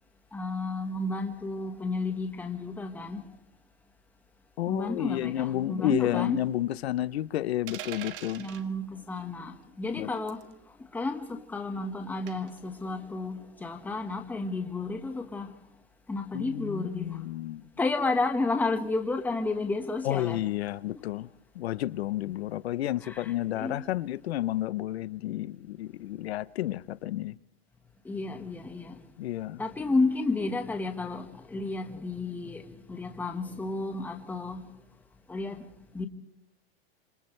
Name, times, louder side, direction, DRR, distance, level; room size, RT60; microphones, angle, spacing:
voice 1, 0.3-3.2 4.7-6.4 8.4-10.4 10.9-15.5 16.1-17.2 17.8-20.4 23.0-23.8 28.0-28.9 29.6-34.6 35.3-36.1, left 3 dB, 5° left, 1.5 m, -32 dB
voice 2, 4.6-8.5 10.0-10.1 16.3-17.6 20.0-21.3 21.6-27.4 29.2-29.6, left 14 dB, 85° left, 0.9 m, -31 dB
sound 1, 7.7-8.6 10.3-10.5 12.3-12.6, right 11 dB, 60° right, 1.8 m, -41 dB
28.5 x 27.5 x 3.3 m
supercardioid pair, 170°, 31 cm